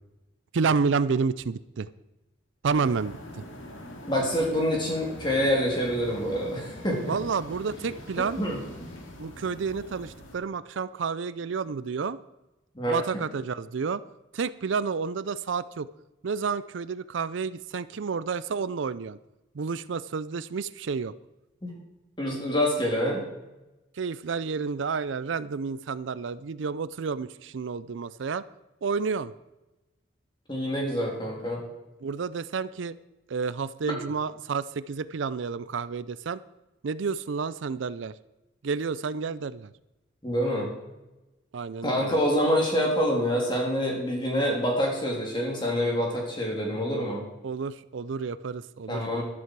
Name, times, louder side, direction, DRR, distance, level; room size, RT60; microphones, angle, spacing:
voice 1, 0.5-1.9 2.6-3.1 7.1-8.4 9.2-12.2 12.9-14.0 14.3-15.9 16.2-19.2 19.6-21.1 24.0-28.4 28.8-29.3 32.0-32.9 33.3-36.4 36.8-38.1 38.6-39.7 41.5-42.1 47.4-49.2, right 5 dB, 75° right, 16 dB, 0.5 m, -30 dB
sound 1, 2.7-10.4, equal, 85° left, 2.3 m, -43 dB
voice 2, 4.1-7.2 8.4-8.6 12.7-13.0 21.6-21.8 22.2-23.2 30.5-31.6 33.9-34.0 40.2-40.7 41.8-47.2 48.9-49.2, equal, 25° left, -1 dB, 3.3 m, -26 dB
12.5 x 12.0 x 4.7 m, 1.0 s
head